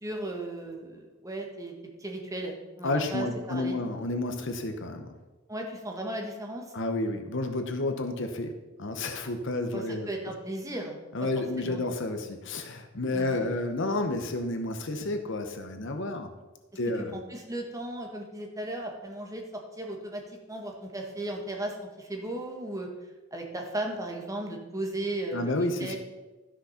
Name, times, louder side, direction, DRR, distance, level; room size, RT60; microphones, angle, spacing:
voice 1, 0.0-1.7 2.0-3.8 5.5-6.6 9.7-11.0 11.6-11.9 13.1-13.5 17.1-19.4 19.8-20.2 20.5-22.9 23.3-26.0, right 1 dB, 15° right, 1 dB, 1.6 m, -36 dB
voice 2, 2.8-5.2 6.7-8.5 8.8-10.1 11.1-16.3 16.8-17.1 25.3-26.0, left 2 dB, 60° left, 7 dB, 0.9 m, -30 dB
12.5 x 6.3 x 5.7 m, 1.2 s
head